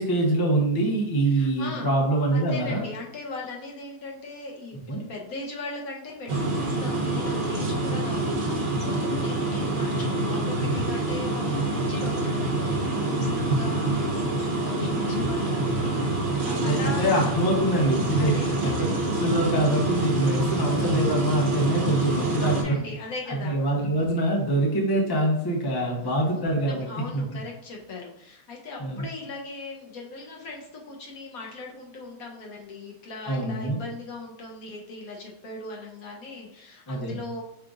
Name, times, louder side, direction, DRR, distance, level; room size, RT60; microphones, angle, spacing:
voice 1, 0.0-2.8 4.9-5.0 16.5-18.3 18.6-18.8 19.1-22.8 23.3-26.9 27.1-27.2 28.8-29.1 33.2-33.8 36.9-37.2, right 1 dB, 35° left, -1 dB, 0.3 m, -24 dB
voice 2, 1.3-1.9 2.3-17.4 18.1-19.0 22.4-23.6 26.0-26.4 26.7-37.4, left 3 dB, 60° left, -1 dB, 1.1 m, -39 dB
sound 1, 6.3-22.6, right 2 dB, 50° right, 0.6 m, -26 dB
5.6 x 2.5 x 3.6 m, 0.78 s
omnidirectional pair, 1.9 m